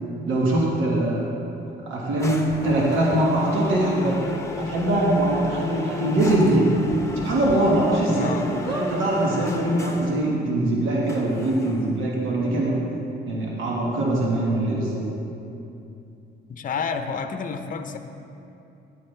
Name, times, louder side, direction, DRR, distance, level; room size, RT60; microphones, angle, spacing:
voice 1, 0.2-1.3 1.8-4.2 4.6-6.6 7.1-12.7 13.3-15.0, right 1 dB, 85° right, -4 dB, 1.5 m, -22 dB
sound 1, 2.2-10.2 11.1-12.0, left 2 dB, 15° left, 0.9 m, -35 dB
sound 2, 4.2-4.3 4.6-4.7 5.1-5.2 6.9-7.6 8.1-8.2 8.6-8.9 9.8-9.9 10.0-10.1, right 2 dB, 20° right, 1.3 m, -33 dB
voice 2, 8.1-8.5 16.5-18.0, left 5 dB, 45° left, 7 dB, 0.6 m, -29 dB
11.0 x 8.8 x 3.3 m, 2.7 s
cardioid pair, 90°, 20 cm